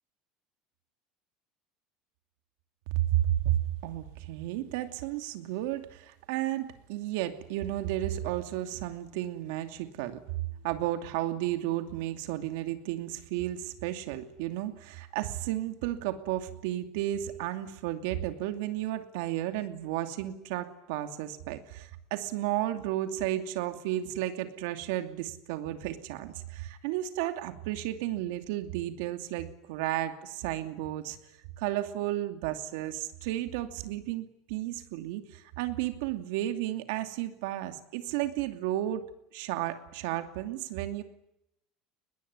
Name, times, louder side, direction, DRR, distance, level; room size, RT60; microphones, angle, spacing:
voice 1, 3.0-10.2 10.6-31.2 31.6-39.0 39.3-41.0, right 13 dB, 85° right, 8 dB, 2.7 m, -33 dB
23.0 x 21.0 x 9.8 m, 0.80 s
cardioid pair, 170°, 0 cm